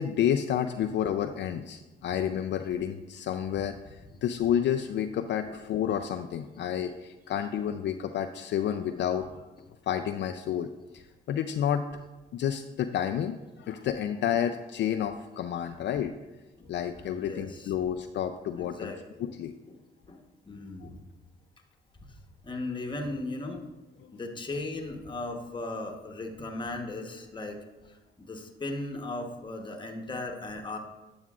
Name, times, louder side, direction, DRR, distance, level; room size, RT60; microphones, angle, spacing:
voice 1, 0.0-9.5 9.8-11.8 12.3-16.1 16.7-18.9 19.2-19.5 20.8-20.9 24.0-24.1, left 9 dB, 65° left, 7 dB, 0.4 m, -30 dB
voice 2, 16.9-17.7 18.5-19.4 19.7-19.8 20.1-21.0 22.0-22.2 22.4-23.7 24.1-27.6 27.9-30.8, left 2 dB, 25° left, 2 dB, 1.1 m, -37 dB
9.0 x 7.0 x 2.4 m, 1.1 s
cardioid pair, 90°, 20 cm